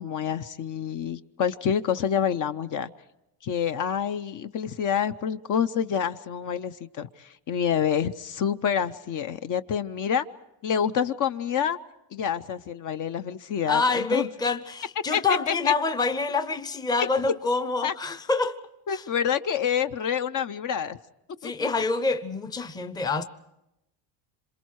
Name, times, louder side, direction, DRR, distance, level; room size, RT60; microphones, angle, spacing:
voice 1, 0.0-2.9 3.4-10.2 10.6-11.8 12.1-14.3 15.1-15.7 17.0-17.1 17.8-17.9 18.9-21.0 21.4-21.7, left 8 dB, 45° left, 0.8 m, -27 dB
voice 2, 13.7-18.6 18.9-19.0 21.4-23.2, left 4 dB, 10° left, 0.7 m, -26 dB
27.0 x 27.0 x 4.7 m
cardioid pair, 130°, 46 cm